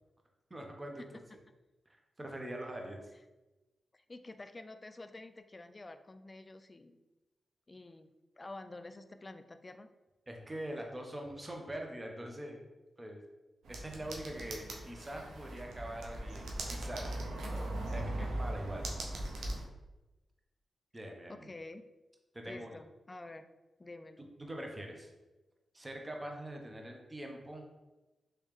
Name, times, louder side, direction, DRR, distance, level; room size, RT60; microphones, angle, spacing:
voice 1, 0.5-1.0 2.2-3.0 10.3-12.6 13.0-13.2 13.7-17.1 17.5-18.9 19.4-19.5 20.9-21.5 22.3-22.8 24.4-25.1 25.7-27.7, right 1 dB, 25° right, 2 dB, 0.8 m, -43 dB
voice 2, 3.9-7.0 7.7-9.9 17.4-17.8 18.2-18.4 21.3-21.8 22.4-23.5 23.8-24.3, left 2 dB, 35° left, 9 dB, 0.3 m, -49 dB
sound 1, 13.7-19.6, right 1 dB, 90° right, 0.5 m, -39 dB
3.3 x 3.1 x 3.2 m, 1.1 s
cardioid pair, 50°, 0 cm